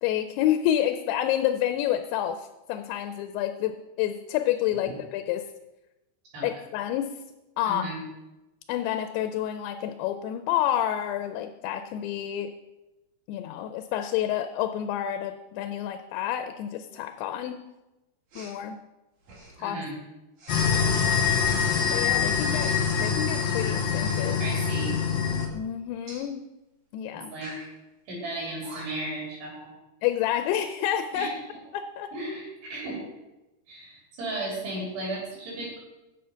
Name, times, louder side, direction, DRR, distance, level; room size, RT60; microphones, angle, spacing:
voice 1, 0.0-5.5 6.4-7.2 7.6-7.9 8.7-12.5 13.3-17.6 18.4-18.8 19.6-19.8 20.7-21.1 21.9-22.7 23.0-24.4 25.5-26.5 26.9-27.3 30.0-31.4 31.7-32.1, left 11 dB, 85° left, 8 dB, 2.5 m, -29 dB
voice 2, 7.7-8.0 19.6-20.0 24.4-25.0 27.3-27.5 28.1-29.7 31.1-31.3 32.1-33.0 33.7-35.8, right 2 dB, 80° right, -4 dB, 4.8 m, -35 dB
Respiratory sounds, 18.3-18.6 19.2-19.6 20.4-20.6 21.4-21.6 22.5-23.1 23.9-24.3 24.7-25.0 26.1-26.3 27.3-27.7 28.3-28.4 28.6-29.1, right 2 dB, 45° right, 2.8 m, -45 dB
sound 1, 20.5-25.5, left 6 dB, 65° left, 1.9 m, -25 dB
7.7 x 7.1 x 5.6 m, 1.0 s
omnidirectional pair, 4.7 m